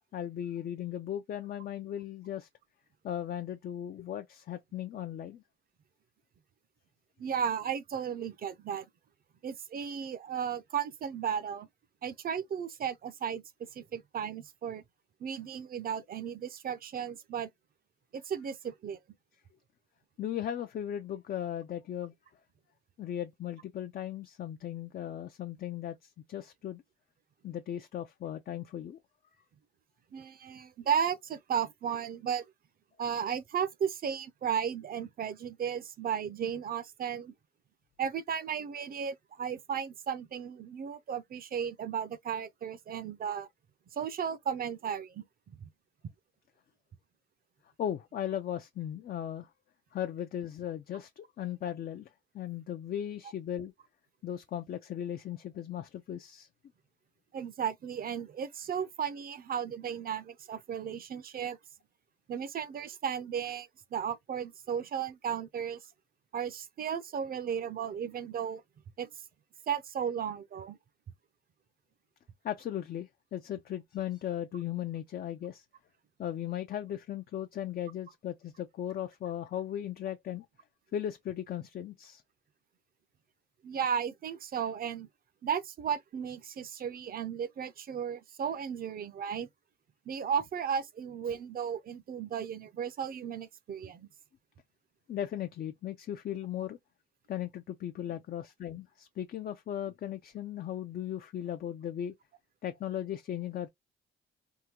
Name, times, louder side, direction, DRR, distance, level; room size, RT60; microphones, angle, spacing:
voice 1, 0.1-2.5 3.0-5.4 20.2-22.1 23.0-26.8 27.4-29.0 47.8-49.5 49.9-53.7 54.2-56.5 72.4-75.6 76.2-80.5 80.9-82.2 95.1-96.8 97.3-102.1 102.6-103.7, left 10 dB, 50° left, 0.4 m, -37 dB
voice 2, 7.2-8.9 9.4-11.7 12.0-14.8 15.2-17.5 18.1-19.0 30.1-32.5 33.0-37.3 38.0-43.5 43.9-45.7 57.3-61.6 62.3-65.8 66.3-68.6 69.0-69.1 69.7-70.8 83.6-85.1 85.4-89.5 90.1-94.1, right 8 dB, 50° right, 0.5 m, -35 dB
3.6 x 2.1 x 2.9 m
cardioid pair, 90°, 20 cm